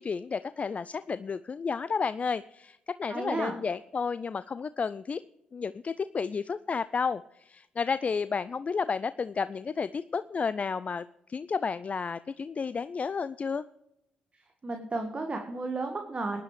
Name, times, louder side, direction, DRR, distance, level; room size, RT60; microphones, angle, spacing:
voice 1, 0.0-5.2 5.5-13.6, left 5 dB, 40° left, 15 dB, 0.4 m, -32 dB
voice 2, 3.1-3.5 14.6-16.4, right 3 dB, 35° right, 5 dB, 1.6 m, -33 dB
19.0 x 10.5 x 3.3 m, 0.86 s
hypercardioid pair, 45°, 4 cm